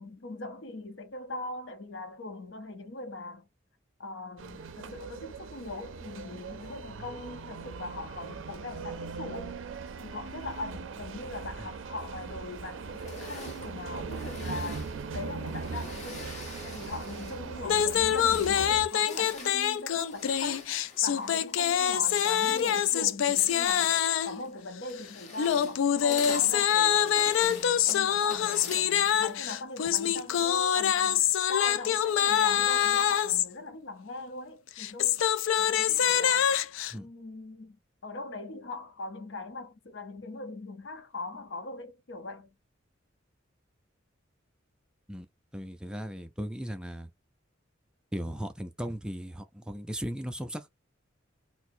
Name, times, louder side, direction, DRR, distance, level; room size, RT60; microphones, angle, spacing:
voice 1, 0.0-3.5 4.0-9.6 10.0-20.6 21.0-36.6 36.9-37.8 38.0-42.5, left 2 dB, 65° left, 0.7 m, -41 dB
sound 1, 4.4-18.9, right 5 dB, 85° right, 0.5 m, -40 dB
sound 2, 12.9-17.5 18.0-29.5, left 3 dB, 40° left, 1.0 m, -46 dB
sound 3, 17.6-24.4 25.4-33.5 34.7-36.9, left 9 dB, 90° left, 0.3 m, -25 dB
voice 2, 45.5-47.1 48.1-50.7, equal, 5° right, 0.3 m, -37 dB
4.3 x 2.0 x 2.6 m
head